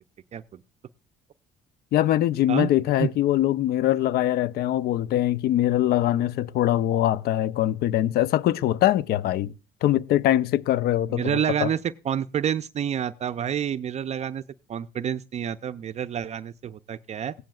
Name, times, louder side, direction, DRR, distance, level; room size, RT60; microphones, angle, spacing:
voice 1, 1.9-9.5 9.8-11.3 11.6-11.7, left 13 dB, 70° left, 0.5 m, -22 dB
voice 2, 11.1-14.4 14.7-17.3, right 9 dB, 40° right, 0.4 m, -28 dB
16.5 x 10.5 x 2.3 m
cardioid pair, 110°, 17 cm